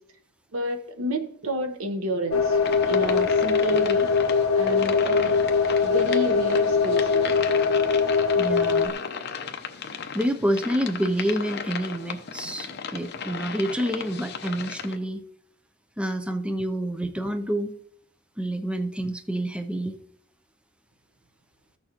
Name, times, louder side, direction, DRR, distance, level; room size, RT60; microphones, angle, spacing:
voice 1, 0.5-2.6 2.9-4.1 4.5-5.4 5.8-7.4, equal, 90° right, 1.0 m, -30 dB
sound 1, 2.3-8.9, left 5 dB, 80° left, 0.8 m, -22 dB
sound 2, 2.6-15.0, left 6 dB, 50° left, 0.8 m, -36 dB
voice 2, 8.4-8.9 9.8-15.2 16.0-17.8 18.4-20.0, right 1 dB, 5° right, 0.5 m, -28 dB
14.5 x 6.5 x 2.9 m
head